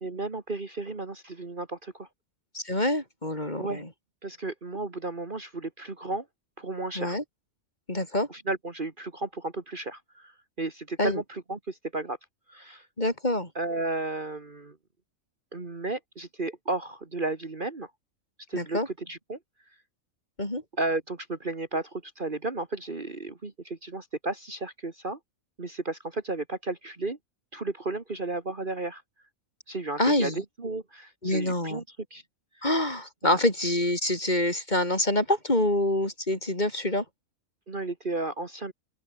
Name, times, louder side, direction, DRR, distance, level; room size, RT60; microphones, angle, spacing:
voice 1, 0.0-2.1 3.6-3.8 4.2-6.3 6.6-7.2 8.3-10.3 10.6-12.2 12.5-12.9 13.6-14.8 15.5-17.9 18.5-19.4 20.8-25.2 25.6-27.2 27.5-29.0 29.7-31.8 32.1-32.2 32.6-32.7 33.2-33.4 37.7-38.7, right 2 dB, 35° right, 2.0 m, -33 dB
voice 2, 2.5-3.9 7.0-7.2 7.9-8.3 11.0-11.2 13.0-13.5 18.5-18.9 20.4-20.6 30.0-30.4 31.2-31.8 32.6-37.0, left 1 dB, 30° left, 5.5 m, -26 dB
open air
omnidirectional pair, 1.5 m